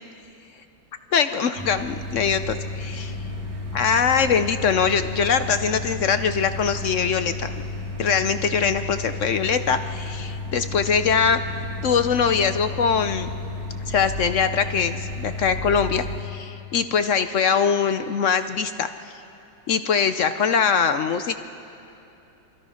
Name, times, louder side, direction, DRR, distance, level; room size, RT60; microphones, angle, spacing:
voice 1, 1.1-3.1 3.7-7.5 8.0-11.4 11.8-13.3 13.9-18.9 19.7-21.4, left 6 dB, 70° left, 10 dB, 0.7 m, -22 dB
sound 1, 1.5-16.2, left 2 dB, 85° right, 3.1 m, -32 dB
27.5 x 23.0 x 5.7 m, 2.8 s
omnidirectional pair, 2.1 m